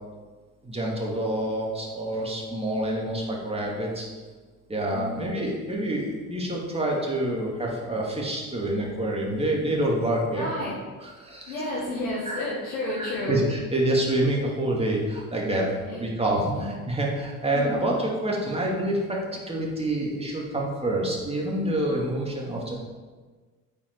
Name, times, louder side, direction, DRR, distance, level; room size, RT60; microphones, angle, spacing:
voice 1, 0.6-4.1 4.7-10.5 11.0-11.7 12.2-12.4 13.0-15.7 16.0-22.7, right 1 dB, 15° right, -3 dB, 2.5 m, -27 dB
voice 2, 10.3-10.7 11.5-13.4 15.9-16.0 16.5-16.9 17.5-17.7, left 2 dB, 75° left, -6 dB, 1.6 m, -31 dB
8.3 x 5.3 x 4.7 m, 1.4 s
figure-of-eight pair, 55°, 43 cm